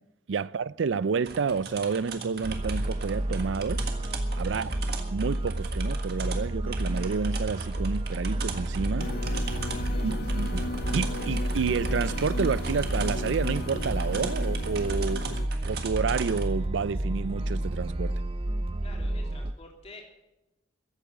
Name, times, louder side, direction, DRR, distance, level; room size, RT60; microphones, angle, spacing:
voice 1, 0.3-3.9 4.4-4.7 5.1-9.1 10.0-10.6 10.9-15.4 15.6-18.2, right 5 dB, 75° right, 0.4 m, -30 dB
sound 1, 1.3-16.5, right 5 dB, 55° right, 1.7 m, -40 dB
sound 2, 2.4-19.5, right 1 dB, 30° right, 0.6 m, -30 dB
voice 2, 4.4-4.7 9.7-10.5 18.8-20.1, left 2 dB, 35° left, 3.1 m, -50 dB
sound 3, 9.0-15.5, left 3 dB, 50° left, 0.5 m, -36 dB
15.0 x 8.6 x 9.4 m
head